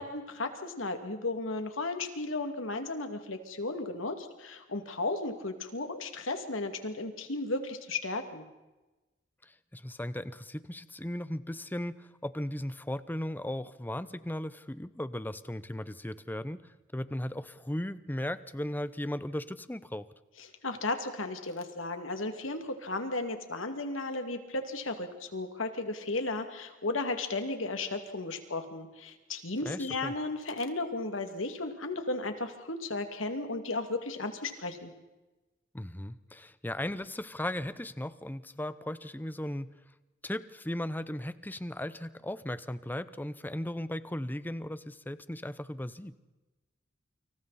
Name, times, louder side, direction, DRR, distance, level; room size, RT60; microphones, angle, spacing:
voice 1, 0.0-8.4 20.4-34.9, left 2 dB, 90° left, 6 dB, 2.5 m, -35 dB
voice 2, 9.4-20.1 29.6-30.1 35.7-39.7 40.2-46.2, left 1 dB, 10° left, 14 dB, 0.7 m, -37 dB
29.0 x 26.0 x 4.2 m, 1.1 s
head